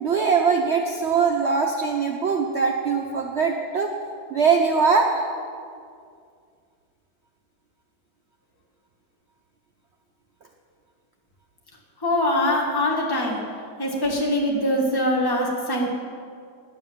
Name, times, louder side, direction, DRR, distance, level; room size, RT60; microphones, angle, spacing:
voice 1, 0.0-3.9 4.3-5.3, right 5 dB, 75° right, 1 dB, 0.6 m, -21 dB
voice 2, 12.0-13.4 13.8-15.9, left 1 dB, 10° left, -2 dB, 1.7 m, -23 dB
10.0 x 9.5 x 7.3 m, 2.3 s
omnidirectional pair, 2.2 m